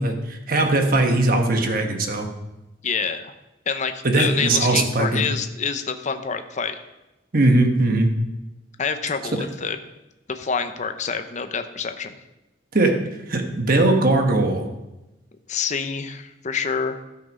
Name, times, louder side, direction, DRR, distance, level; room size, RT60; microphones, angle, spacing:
voice 1, 0.0-2.3 4.0-5.2 7.3-8.1 12.7-12.9 13.3-14.7, right 2 dB, 50° right, 4 dB, 1.2 m, -19 dB
voice 2, 2.8-3.3 3.7-6.8 8.8-9.8 10.3-12.1 15.5-17.0, left 5 dB, 40° left, 8 dB, 0.7 m, -27 dB
13.0 x 5.9 x 5.3 m, 1.0 s
head